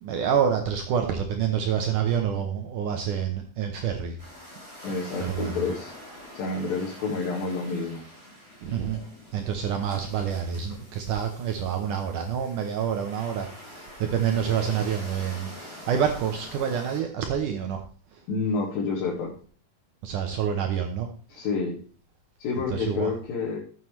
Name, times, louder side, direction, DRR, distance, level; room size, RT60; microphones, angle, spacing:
voice 1, 0.0-4.2 5.2-5.5 8.6-9.0 9.3-17.8 20.0-21.1 22.7-23.1, right 8 dB, 70° right, 4 dB, 2.1 m, -27 dB
sound 1, 4.2-17.0, left 1 dB, 15° right, 6.6 m, -45 dB
voice 2, 4.8-5.9 6.3-8.0 14.5-14.6 18.3-19.3 21.3-21.8 22.4-23.6, left 4 dB, 70° left, -5 dB, 3.4 m, -29 dB
13.0 x 7.6 x 3.2 m, 0.40 s
omnidirectional pair, 4.4 m